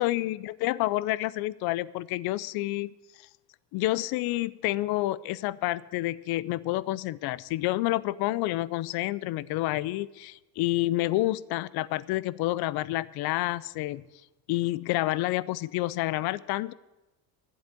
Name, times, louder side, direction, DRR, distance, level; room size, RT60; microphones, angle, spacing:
voice 1, 0.0-2.9 3.7-14.0 14.5-16.7, left 17 dB, 60° left, 21 dB, 0.6 m, -29 dB
12.5 x 8.0 x 9.7 m, 1.0 s
cardioid pair, 145°, 42 cm